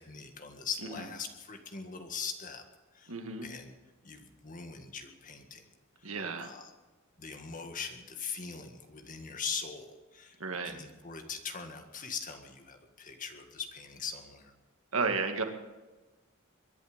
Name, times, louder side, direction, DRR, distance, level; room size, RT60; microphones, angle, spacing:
voice 1, 0.0-2.6 2.9-3.1 3.4-3.7 4.0-5.7 6.0-6.1 6.4-6.7 7.2-14.5, left 6 dB, 40° left, 5 dB, 1.9 m, -41 dB
voice 2, 3.1-3.5 6.0-6.5 10.4-10.7 14.9-15.4, right 4 dB, 85° right, 5 dB, 1.9 m, -32 dB
23.0 x 11.0 x 5.2 m, 1.2 s
head